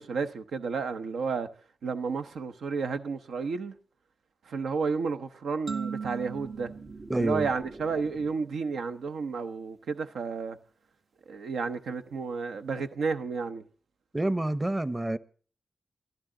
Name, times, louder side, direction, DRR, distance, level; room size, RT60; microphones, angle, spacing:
voice 1, 0.0-1.5 1.8-3.8 4.5-6.7 7.2-10.6 11.3-13.6, right 5 dB, 90° right, 0.8 m, -32 dB
sound 1, 5.7-8.3, right 5 dB, 70° right, 1.4 m, -39 dB
sound 2, 6.0-8.5, right 2 dB, 40° right, 3.0 m, -48 dB
voice 2, 7.1-7.5 14.1-15.2, right 1 dB, 20° right, 0.8 m, -28 dB
22.5 x 13.5 x 3.9 m
cardioid pair, 50°, 0 cm